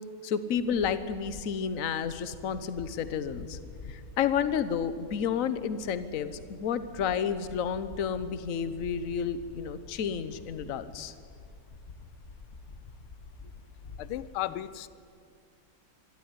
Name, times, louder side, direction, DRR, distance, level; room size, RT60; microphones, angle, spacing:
voice 1, 0.2-3.6 3.9-11.1, left 7 dB, 50° left, 12 dB, 1.0 m, -31 dB
sound 1, 0.6-1.7 2.0-14.3, left 3 dB, 35° left, 1.3 m, -48 dB
voice 2, 14.0-14.9, left 13 dB, 80° left, 16 dB, 1.6 m, -34 dB
25.0 x 13.0 x 9.7 m, 2.2 s
omnidirectional pair, 2.4 m